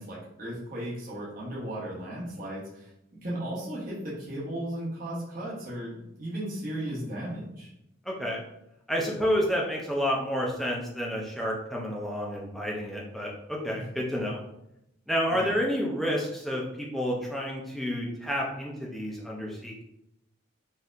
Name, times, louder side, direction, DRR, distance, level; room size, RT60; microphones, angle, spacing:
voice 1, 0.0-7.7 13.7-13.8 15.3-15.5, right 1 dB, 40° right, -7 dB, 0.9 m, -36 dB
voice 2, 8.1-8.4 8.9-14.4 15.1-19.8, equal, ahead, -3 dB, 0.6 m, -30 dB
4.3 x 2.8 x 2.5 m, 0.83 s
head